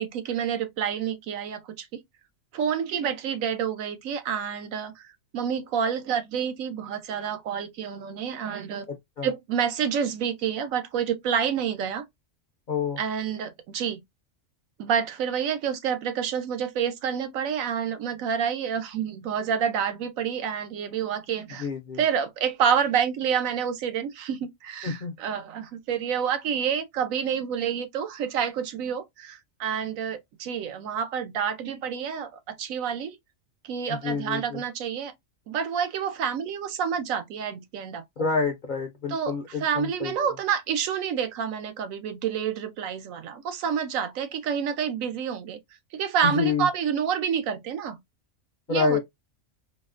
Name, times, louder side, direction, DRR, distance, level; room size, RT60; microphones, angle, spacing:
voice 1, 0.0-2.0 2.5-8.9 9.2-12.0 13.0-14.0 14.8-21.7 22.0-33.2 33.6-35.1 35.5-38.3 39.1-45.6 45.9-48.0 48.7-49.0, right 7 dB, 85° right, 1.0 m, -28 dB
voice 2, 8.9-9.3 12.7-13.0 21.6-22.0 24.8-25.2 34.0-34.6 38.2-40.1 46.2-46.7 48.7-49.0, left 5 dB, 60° left, 0.5 m, -28 dB
4.0 x 2.1 x 2.4 m
omnidirectional pair, 1.4 m